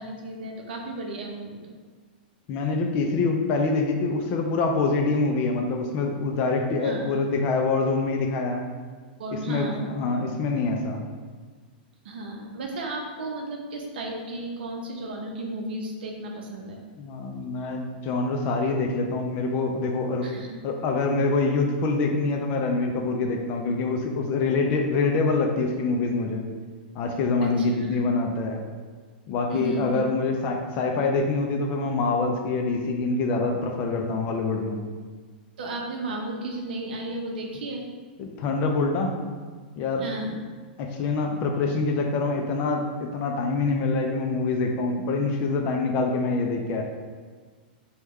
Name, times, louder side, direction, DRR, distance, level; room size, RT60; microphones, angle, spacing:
voice 1, 0.0-1.7 6.8-7.1 9.2-10.2 12.0-16.8 20.2-20.6 27.4-28.0 29.5-30.0 35.6-37.8 40.0-40.4, right 2 dB, 75° right, 1 dB, 0.6 m, -34 dB
voice 2, 2.5-8.6 9.5-11.0 17.0-20.3 20.6-26.4 26.9-28.6 29.3-34.8 38.2-39.2 39.8-40.4 40.8-46.8, left 3 dB, 30° left, 2 dB, 0.3 m, -25 dB
3.0 x 2.2 x 3.4 m, 1.5 s
hypercardioid pair, 155°, 5 cm